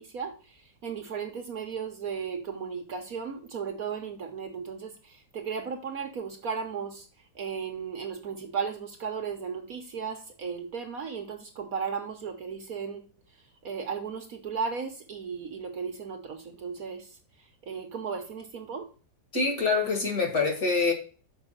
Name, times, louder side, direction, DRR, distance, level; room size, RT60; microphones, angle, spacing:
voice 1, 0.0-7.1 7.3-13.0 13.6-18.9, right 6 dB, 55° right, 5 dB, 1.2 m, -35 dB
voice 2, 19.3-20.9, left 4 dB, 50° left, 2 dB, 2.3 m, -25 dB
6.1 x 5.1 x 6.5 m, 0.38 s
omnidirectional pair, 2.0 m